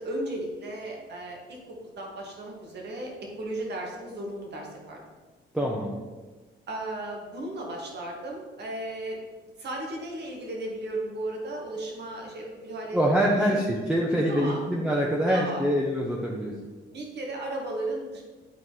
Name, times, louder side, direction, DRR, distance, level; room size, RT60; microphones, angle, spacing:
voice 1, 0.0-5.0 6.7-9.2 9.6-13.6 14.3-14.6 15.3-15.6 16.9-18.2, right 1 dB, 60° right, 0 dB, 2.1 m, -35 dB
voice 2, 5.5-6.0 12.9-16.7, equal, 5° right, -3 dB, 1.0 m, -25 dB
9.3 x 4.3 x 4.2 m, 1.3 s
cardioid pair, 90°, 20 cm